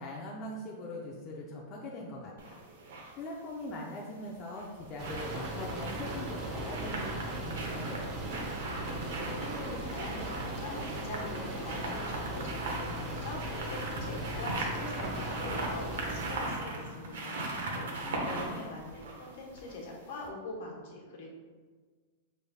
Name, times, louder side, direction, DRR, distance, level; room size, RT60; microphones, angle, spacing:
voice 1, 0.0-2.6 3.2-8.1 17.2-18.6, left 1 dB, 30° left, -4 dB, 0.5 m, -42 dB
sound 1, 2.4-3.1 4.4-19.9 20.2-20.3, right 2 dB, 80° right, 0.8 m, -39 dB
sound 2, 5.0-16.4, right 1 dB, 35° right, 0.9 m, -38 dB
voice 2, 8.7-21.3, left 2 dB, 65° left, -2 dB, 1.2 m, -43 dB
5.1 x 3.2 x 2.3 m, 1.5 s
supercardioid pair, 145°, 0 cm